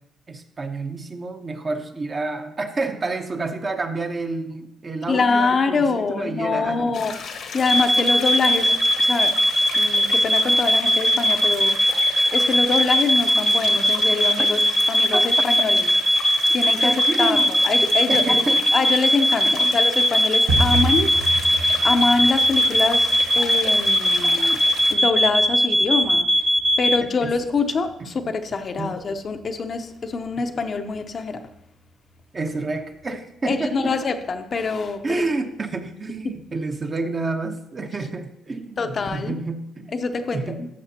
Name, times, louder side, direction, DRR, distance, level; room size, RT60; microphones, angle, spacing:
voice 1, 0.3-7.2 15.1-15.2 16.8-17.5 18.1-18.6 19.4-19.8 27.0-27.3 28.0-28.3 28.8-29.0 32.3-34.0 35.0-39.9 40.3-40.6, right 3 dB, 35° right, 5 dB, 0.9 m, -29 dB
voice 2, 5.1-7.1 7.5-8.7 9.0-9.3 9.7-11.8 12.3-14.6 14.9-15.8 16.5-16.9 17.2-18.4 18.7-21.5 21.8-24.6 24.9-26.3 26.8-31.4 33.5-35.0 38.8-39.4 39.9-40.7, left 4 dB, 45° left, 6 dB, 0.7 m, -24 dB
sound 1, 6.9-25.0, left 5 dB, 70° left, 1.2 m, -35 dB
sound 2, 7.7-27.0, equal, 5° left, 0.3 m, -20 dB
sound 3, 20.5-31.2 31.4-32.2 32.4-32.7 33.0-33.4 33.6-33.8 34.3-34.8 35.1-35.2 35.7-35.8, right 2 dB, 70° right, 1.4 m, -32 dB
12.5 x 6.7 x 2.9 m, 0.81 s
cardioid pair, 90°, 0 cm